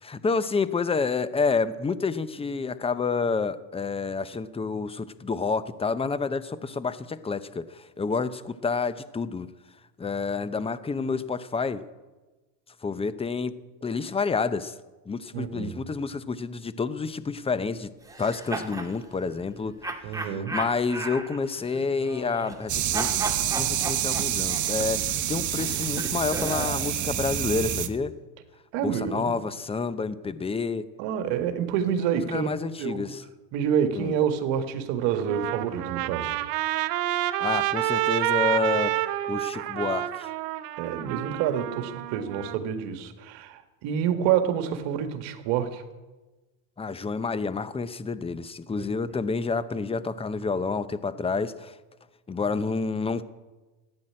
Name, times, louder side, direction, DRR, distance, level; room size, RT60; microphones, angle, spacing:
voice 1, 0.0-9.5 10.0-11.8 12.8-13.6 13.8-14.7 15.1-17.9 18.2-19.7 20.1-23.1 23.5-28.1 28.8-30.9 32.0-33.2 34.0-34.1 37.4-40.3 46.8-51.8 52.3-53.2, left 4 dB, 10° left, 15 dB, 0.7 m, -29 dB
voice 2, 15.3-15.7 20.0-20.6 28.7-29.3 31.0-32.5 32.8-33.1 33.5-36.4 40.8-45.8 48.8-48.9, right 8 dB, 65° right, 8 dB, 1.9 m, -28 dB
sound 1, 18.0-18.9 19.8-22.7 22.9-26.9, right 3 dB, 5° right, 2.0 m, -35 dB
sound 2, 22.7-27.9, right 10 dB, 40° right, 1.3 m, -27 dB
Trumpet, 35.1-42.6, right 15 dB, 85° right, 1.0 m, -28 dB
15.0 x 9.7 x 8.7 m, 1.2 s
supercardioid pair, 105°, 47 cm